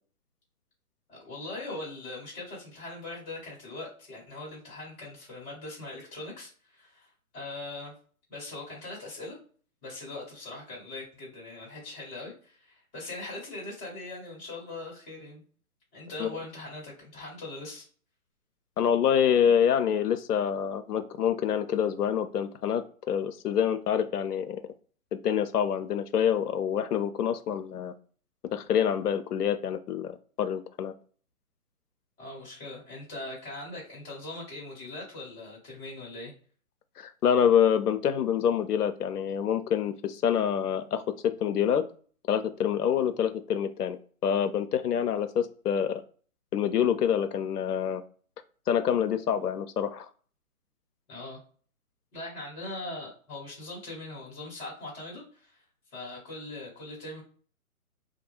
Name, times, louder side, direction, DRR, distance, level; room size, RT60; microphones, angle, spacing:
voice 1, 1.1-7.9 8.3-9.4 9.8-15.4 15.9-17.9 32.2-36.3 51.1-51.4 52.1-55.6 55.9-57.2, left 2 dB, 15° left, -4 dB, 1.0 m, -41 dB
voice 2, 18.8-24.6 25.2-27.9 28.5-30.9 37.0-41.8 42.3-46.0 46.5-48.0 48.7-50.1, left 8 dB, 90° left, 9 dB, 0.5 m, -26 dB
2.3 x 2.2 x 3.0 m, 0.44 s
hypercardioid pair, 145°, 45 cm